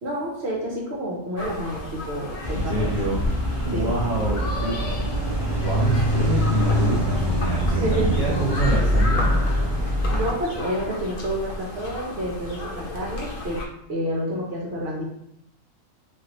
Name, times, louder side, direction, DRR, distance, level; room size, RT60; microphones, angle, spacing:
voice 1, 0.0-3.2 3.7-3.9 7.7-8.2 10.1-13.6 13.9-15.0, equal, 60° right, -3 dB, 0.9 m, -29 dB
sound 1, 1.4-13.7, left 1 dB, 90° left, 1.1 m, -32 dB
sound 2, 2.4-10.3, equal, 40° right, 0.3 m, -24 dB
voice 2, 2.6-3.2 3.6-4.9 5.6-9.3, right 2 dB, 20° left, -8 dB, 0.8 m, -27 dB
3.3 x 2.3 x 2.9 m, 0.74 s
omnidirectional pair, 1.3 m